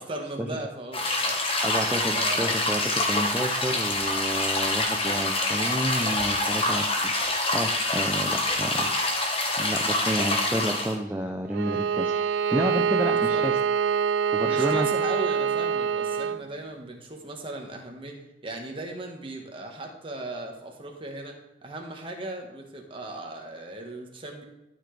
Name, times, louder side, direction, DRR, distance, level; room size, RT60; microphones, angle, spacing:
voice 1, 0.0-1.4 2.1-2.6 13.0-13.5 14.4-24.4, right 2 dB, 25° right, 1 dB, 1.4 m, -37 dB
sound 1, 0.9-10.9, left 2 dB, 30° left, 1.4 m, -26 dB
voice 2, 1.6-13.5 14.3-14.9, right 1 dB, 10° right, 1 dB, 0.5 m, -30 dB
Bowed string instrument, 11.5-16.4, right 7 dB, 75° right, 0.3 m, -25 dB
12.5 x 5.9 x 3.4 m, 0.98 s
head